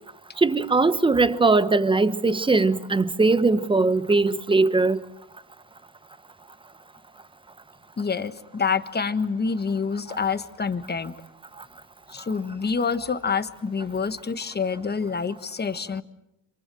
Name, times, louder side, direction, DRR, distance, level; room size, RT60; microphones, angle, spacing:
voice 1, 0.4-5.0, right 3 dB, 10° right, 1.0 m, -20 dB
voice 2, 8.0-11.1 12.1-16.0, left 5 dB, 20° left, 1.4 m, -27 dB
27.5 x 27.5 x 7.6 m
cardioid pair, 135°, 49 cm